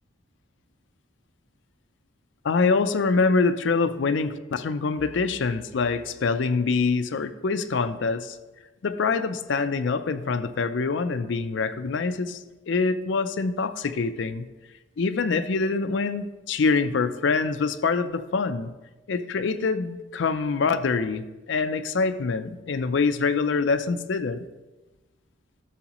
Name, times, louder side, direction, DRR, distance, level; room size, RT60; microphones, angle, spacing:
voice 1, 2.4-8.4 8.8-14.5 15.0-18.7 19.1-24.4, left 4 dB, 65° left, 11 dB, 0.4 m, -25 dB
11.0 x 7.0 x 3.0 m, 1.1 s
head